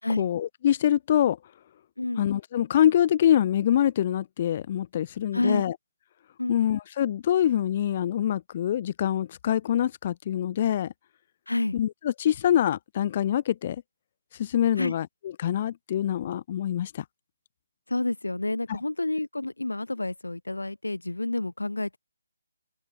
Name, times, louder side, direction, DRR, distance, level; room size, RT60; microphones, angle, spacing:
voice 1, 0.2-1.4 2.2-5.7 6.5-10.9 11.7-13.8 14.3-15.1 15.4-17.0, left 10 dB, 35° left, 3.0 m, -25 dB
voice 2, 11.5-11.8 14.8-14.9 17.9-22.0, left 2 dB, 90° left, 4.7 m, -29 dB
figure-of-eight pair, 155°, 0 cm